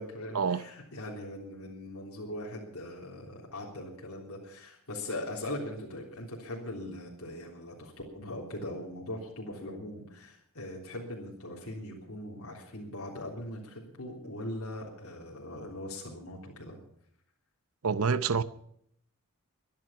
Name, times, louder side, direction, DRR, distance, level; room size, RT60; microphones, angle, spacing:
voice 1, 0.0-16.8, left 1 dB, 75° left, 3.6 m, -40 dB
voice 2, 17.8-18.4, right 5 dB, 75° right, 0.7 m, -27 dB
22.5 x 11.0 x 5.8 m
head